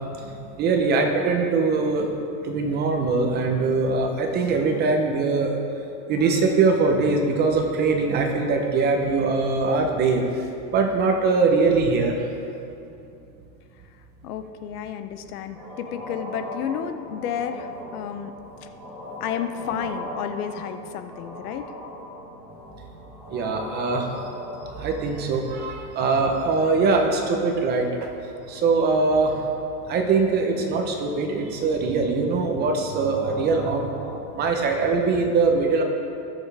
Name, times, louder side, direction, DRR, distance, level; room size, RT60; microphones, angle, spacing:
voice 1, 0.6-2.1 2.4-5.6 6.1-10.3 10.7-12.2 23.3-24.1 24.7-28.1 28.5-29.4 29.9-33.9 34.3-35.8, right 4 dB, 20° right, 3 dB, 0.7 m, -22 dB
voice 2, 14.2-18.3 18.6-18.7 19.2-21.7, left 8 dB, 70° left, 9 dB, 0.8 m, -31 dB
sound 1, 15.5-34.2, left 1 dB, 5° left, 2.8 m, -41 dB
18.5 x 7.0 x 3.4 m, 2.7 s
supercardioid pair, 160°, 47 cm